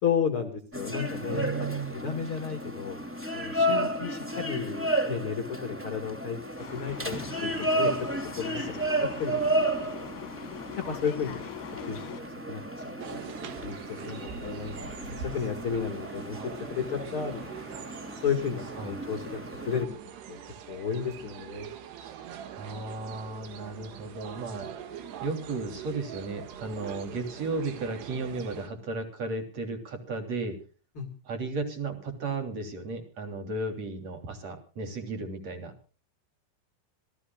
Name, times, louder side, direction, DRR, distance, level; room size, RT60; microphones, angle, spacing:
voice 1, 0.0-3.0 3.3-6.4 6.7-8.1 8.4-9.7 10.8-11.4 11.9-14.9 15.2-17.6 18.2-19.4 19.6-19.9 20.3-20.4 20.7-21.7 30.9-31.1, left 7 dB, 50° left, 5 dB, 1.6 m, -33 dB
sound 1, 0.7-19.8, right 1 dB, 5° right, 1.0 m, -33 dB
voice 2, 1.2-2.0 18.8-18.9 22.5-24.7 25.2-30.6 31.3-35.7, right 3 dB, 40° right, 5 dB, 3.8 m, -34 dB
sound 2, 6.6-12.2, left 12 dB, 65° left, 2.8 m, -42 dB
sound 3, 13.0-28.7, right 8 dB, 65° right, 3.7 m, -43 dB
26.0 x 17.5 x 2.4 m, 0.37 s
omnidirectional pair, 5.5 m